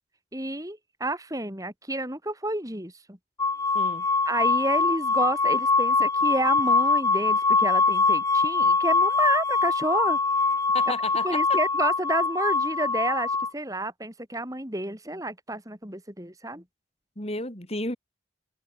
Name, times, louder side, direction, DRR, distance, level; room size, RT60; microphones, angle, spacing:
voice 1, 0.3-3.2 4.3-10.2 11.2-16.6, right 1 dB, 20° right, 5.8 m, -30 dB
sound 1, 3.4-13.5, left 4 dB, 15° left, 2.2 m, -23 dB
voice 2, 3.7-4.1 10.7-11.6 17.2-18.0, left 2 dB, 35° left, 5.3 m, -32 dB
open air
head